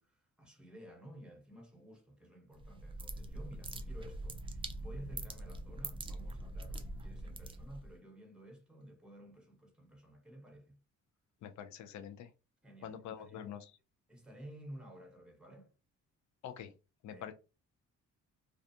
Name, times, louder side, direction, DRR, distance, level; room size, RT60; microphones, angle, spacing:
voice 1, 0.0-10.8 12.6-13.6 14.1-15.7 17.1-17.2, equal, 5° right, 0.9 m, -53 dB
sound 1, 2.5-8.0, right 2 dB, 20° right, 0.4 m, -43 dB
voice 2, 11.4-12.3 12.8-13.6 16.4-16.7 17.0-17.3, left 9 dB, 70° left, 0.5 m, -45 dB
2.3 x 2.3 x 2.7 m
cardioid pair, 90°, 30 cm